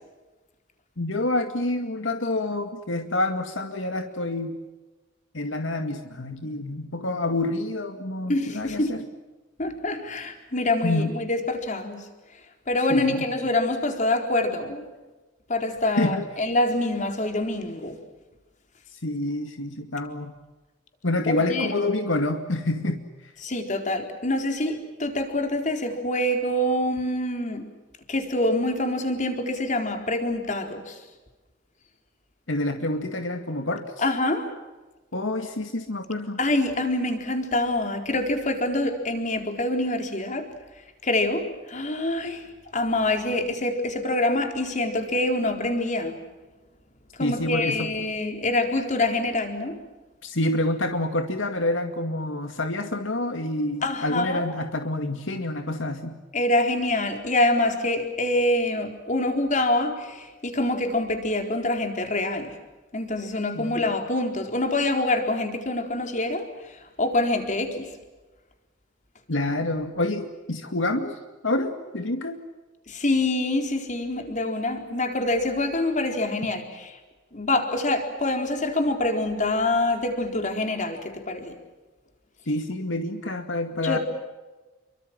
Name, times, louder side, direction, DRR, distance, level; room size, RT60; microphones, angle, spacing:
voice 1, 1.0-4.6 5.3-9.0 10.8-11.1 12.9-13.2 16.0-16.3 19.0-20.3 21.0-23.0 32.5-33.9 35.1-36.4 47.2-47.9 50.2-56.2 63.5-63.8 69.3-71.2 71.4-72.4 82.5-84.0, left 2 dB, 80° left, 6 dB, 2.2 m, -27 dB
voice 2, 8.3-8.9 9.6-12.1 12.7-14.9 15.5-18.0 21.3-21.7 23.4-27.6 28.1-31.0 34.0-34.5 36.4-40.5 41.0-42.5 42.7-46.2 47.2-49.8 53.8-54.6 56.3-62.6 62.9-67.9 72.9-76.9 77.3-81.5 83.8-84.0, left 1 dB, 40° left, 5 dB, 4.2 m, -25 dB
29.0 x 24.5 x 7.5 m, 1.2 s
head